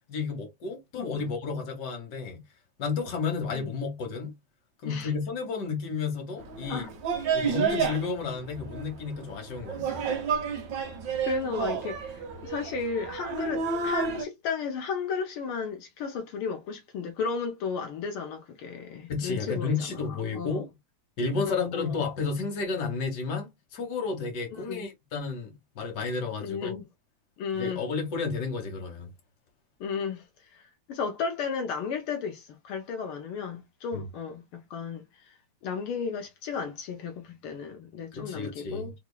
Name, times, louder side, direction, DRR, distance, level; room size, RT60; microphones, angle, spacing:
voice 1, 0.1-2.4 2.8-4.3 4.8-6.8 7.3-10.1 19.1-20.7 21.2-26.7 27.5-29.1 33.9-34.0 38.1-38.9, left 4 dB, 50° left, 1.3 m, -32 dB
sound 1, 6.4-14.3, right 5 dB, 65° right, 1.1 m, -31 dB
voice 2, 11.2-19.8 20.3-20.6 21.3-22.0 24.5-24.8 26.4-26.8 27.4-27.8 29.8-35.4 35.6-38.9, left 5 dB, 85° left, 1.2 m, -34 dB
4.4 x 3.0 x 2.2 m
omnidirectional pair, 3.3 m